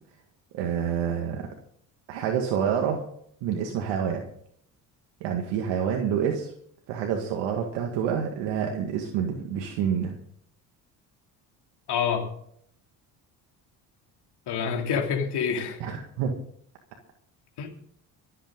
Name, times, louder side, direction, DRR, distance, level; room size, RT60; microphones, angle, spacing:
voice 1, 0.5-1.5 2.1-3.0 3.4-4.2 5.2-6.5 6.9-10.2 15.8-16.3, right 8 dB, 80° right, 2 dB, 2.0 m, -27 dB
voice 2, 11.9-12.3 14.5-15.8 17.6-17.7, left 6 dB, 65° left, 1 dB, 2.9 m, -27 dB
25.0 x 8.9 x 3.8 m, 0.65 s
supercardioid pair, 65°, 43 cm